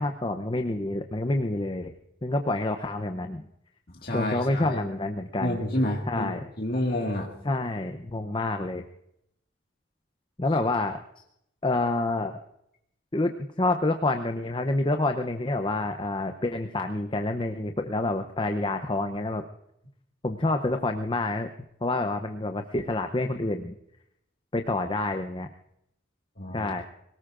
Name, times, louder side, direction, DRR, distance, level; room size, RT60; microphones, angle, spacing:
voice 1, 0.0-1.9 2.2-3.5 4.1-5.6 6.1-6.5 7.4-8.8 10.4-11.0 11.6-12.4 13.1-19.4 20.2-21.5 21.8-23.7 24.5-25.5 26.5-26.8, left 2 dB, 25° left, 6 dB, 0.7 m, -28 dB
voice 2, 4.0-4.8 5.4-6.3 6.6-7.3 26.4-26.7, left 1 dB, 50° left, -1 dB, 1.9 m, -29 dB
25.5 x 18.0 x 2.5 m, 0.77 s
head